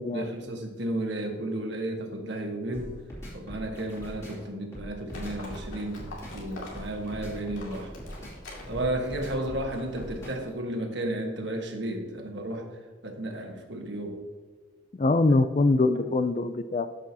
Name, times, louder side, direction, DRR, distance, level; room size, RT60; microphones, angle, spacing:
voice 1, 0.1-3.0 3.3-6.0 6.3-7.9 8.7-12.7 13.0-14.2, right 1 dB, 65° right, 3 dB, 1.3 m, -33 dB
sound 1, 2.7-10.5, equal, 15° left, 2.7 m, -42 dB
Livestock farm animals working animals, 5.1-10.3, left 1 dB, 90° left, 2.3 m, -44 dB
voice 2, 15.0-17.0, left 3 dB, 35° left, 11 dB, 0.3 m, -23 dB
13.5 x 5.9 x 2.8 m, 1.4 s
head